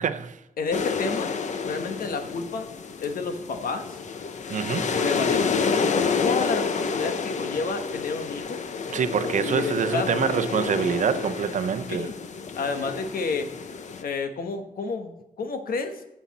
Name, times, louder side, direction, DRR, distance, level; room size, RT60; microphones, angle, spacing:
voice 1, 0.0-0.4 4.5-4.9 8.9-12.1, right 7 dB, 60° right, 0.7 m, -26 dB
voice 2, 0.6-1.4 1.7-2.7 3.0-4.0 4.9-5.5 6.2-8.6 9.4-10.3 11.9-12.2 12.5-13.5 14.0-16.0, left 4 dB, 85° left, 1.2 m, -30 dB
sound 1, 0.7-14.0, left 5 dB, 55° left, 0.8 m, -29 dB
17.5 x 7.1 x 4.1 m
wide cardioid pair, 180°, 15 cm